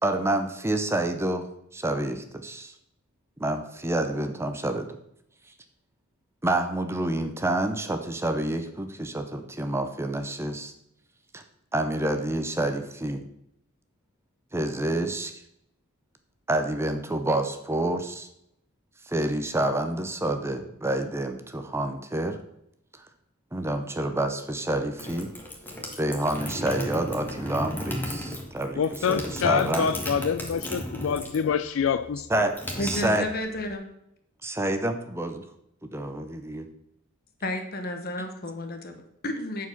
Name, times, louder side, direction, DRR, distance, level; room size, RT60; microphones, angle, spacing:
voice 1, 0.0-2.7 3.4-5.0 6.4-10.7 11.3-11.4 11.7-13.2 14.5-15.4 16.5-18.3 19.0-22.4 23.5-25.3 26.0-29.9 32.3-33.3 34.4-35.4 35.8-36.7, right 1 dB, 10° right, 0.6 m, -28 dB
sound 1, 24.7-31.5 31.8-33.7, left 1 dB, 10° left, 1.4 m, -35 dB
voice 2, 28.8-32.3, left 7 dB, 70° left, 0.4 m, -26 dB
voice 3, 32.8-33.9 37.4-39.7, left 1 dB, 45° left, 1.2 m, -32 dB
8.4 x 4.7 x 5.7 m
head